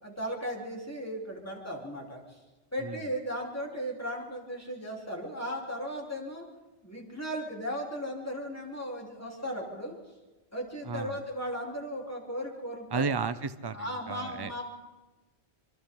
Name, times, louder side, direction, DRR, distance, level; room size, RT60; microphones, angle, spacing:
voice 1, 0.0-2.4 2.7-6.4 6.8-10.0 10.5-13.0 13.7-14.6, equal, 10° left, -2 dB, 4.3 m, -36 dB
voice 2, 10.8-11.2 12.9-14.5, right 4 dB, 25° right, 13 dB, 0.7 m, -33 dB
26.0 x 25.0 x 4.0 m, 1.2 s
omnidirectional pair, 1.2 m